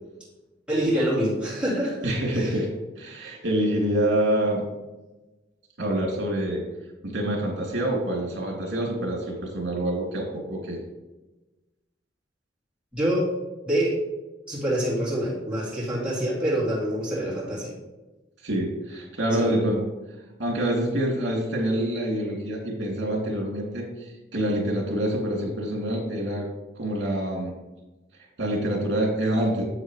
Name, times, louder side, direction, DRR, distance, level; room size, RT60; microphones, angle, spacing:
voice 1, 0.7-2.1 2.4-2.5 12.9-13.3 13.6-13.9 14.5-17.7 19.4-19.7, right 1 dB, 5° right, -8 dB, 2.3 m, -26 dB
voice 2, 2.0-2.7 3.0-4.6 5.8-6.6 7.0-10.8 18.4-19.8 20.4-26.5 26.7-27.6 28.4-29.6, right 1 dB, 70° right, -1 dB, 2.8 m, -26 dB
9.8 x 7.6 x 3.3 m, 1.1 s
head